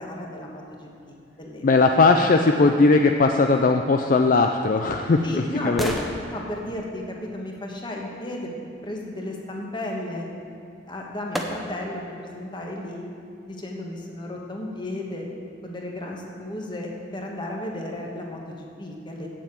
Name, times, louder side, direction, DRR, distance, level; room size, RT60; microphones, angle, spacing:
voice 1, 0.0-1.6 2.4-2.5 5.2-5.9 6.3-10.3 10.9-13.0 13.5-15.3 15.6-19.3, left 1 dB, 25° left, -1 dB, 1.3 m, -34 dB
voice 2, 1.6-6.0, left 3 dB, 45° left, 5 dB, 0.4 m, -19 dB
sound 1, 4.5-8.3 10.4-10.5 11.3-12.0 12.5-12.6, equal, ahead, 0.8 m, -37 dB
8.1 x 7.3 x 8.5 m, 2.4 s
head